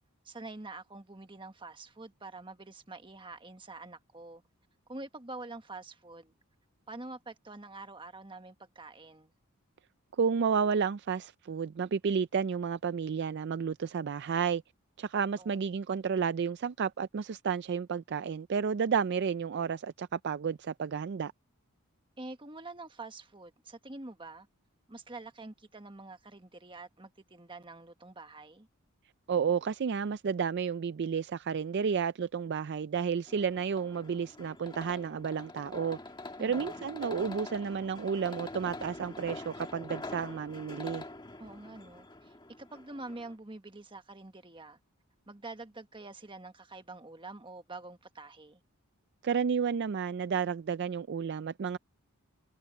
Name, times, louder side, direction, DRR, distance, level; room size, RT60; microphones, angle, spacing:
voice 1, 0.2-4.4 4.9-6.3 6.9-9.3 15.4-15.6 22.2-24.5 24.9-28.7 36.4-36.8 41.4-44.8 45.3-48.6, right 2 dB, 20° right, 1.4 m, -46 dB
voice 2, 10.2-14.6 15.0-21.3 29.3-36.0 36.4-41.0 49.2-51.8, right 6 dB, 50° right, 0.4 m, -31 dB
sound 1, 33.3-43.4, left 2 dB, 20° left, 1.8 m, -45 dB
head